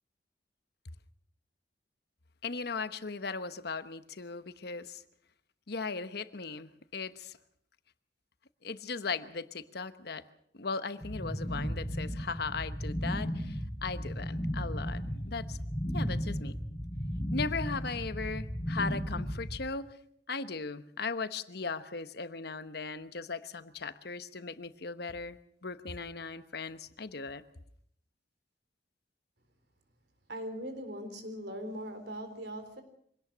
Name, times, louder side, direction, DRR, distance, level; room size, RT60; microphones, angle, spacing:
voice 1, 2.4-5.0 5.7-7.4 8.6-10.2 10.5-15.6 15.9-16.6 17.3-20.0 20.3-27.4, left 4 dB, 60° left, 12 dB, 1.1 m, -38 dB
sound 1, 11.0-19.6, equal, 10° left, 4.2 m, -35 dB
voice 2, 30.3-32.8, equal, 65° right, 8 dB, 3.9 m, -40 dB
24.5 x 18.0 x 6.2 m, 0.66 s
head